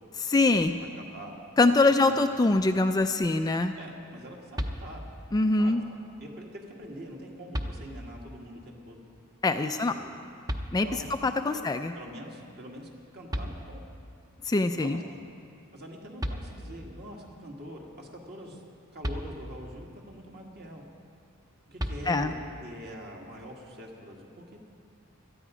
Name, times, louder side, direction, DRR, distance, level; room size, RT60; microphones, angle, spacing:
voice 1, 0.2-0.8 1.6-3.7 5.3-5.8 9.4-9.9 10.7-10.9 11.2-11.9 14.5-15.0 22.1-22.3, left 2 dB, 20° left, 7 dB, 0.3 m, -23 dB
voice 2, 1.0-1.4 1.8-2.1 3.8-5.0 5.6-9.0 9.9-10.1 10.8-11.1 11.5-11.6 12.0-13.8 14.8-15.2 15.7-18.6 18.9-20.8 21.7-24.6, equal, 45° right, 0 dB, 2.0 m, -44 dB
sound 1, 4.5-5.3 6.8-6.9 7.5-8.3 10.5-11.2 13.0-13.1 13.3-14.1 15.8-15.9 16.2-17.0 19.0-19.8 21.8-22.6, equal, 15° right, 0.7 m, -35 dB
18.0 x 13.0 x 5.0 m, 2.4 s
head